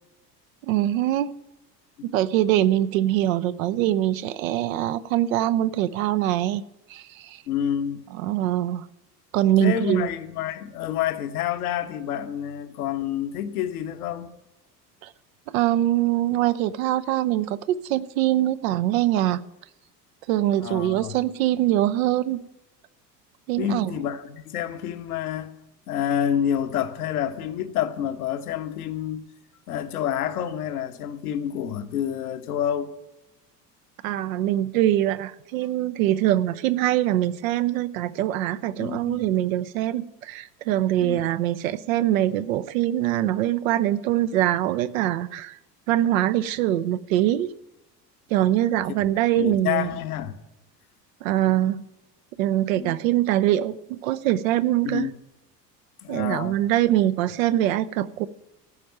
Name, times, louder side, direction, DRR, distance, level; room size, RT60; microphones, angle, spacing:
voice 1, 0.6-1.3 2.0-6.6 6.9-7.4 8.2-8.8 9.3-10.1 15.0-15.1 15.5-19.4 20.3-22.4 23.5-23.9 34.0-45.6 45.9-47.5 48.3-49.9 51.2-51.8 52.4-55.1 56.1-58.3, right 13 dB, 55° right, 0.6 m, -23 dB
voice 2, 7.5-8.0 9.6-14.3 20.6-21.1 23.6-25.5 25.9-29.3 29.7-32.9 38.8-39.3 41.0-41.2 49.3-50.4 52.7-53.0 54.8-55.1 56.0-56.5, left 10 dB, 60° left, 1.1 m, -28 dB
13.5 x 5.2 x 9.0 m
figure-of-eight pair, 70°, 50 cm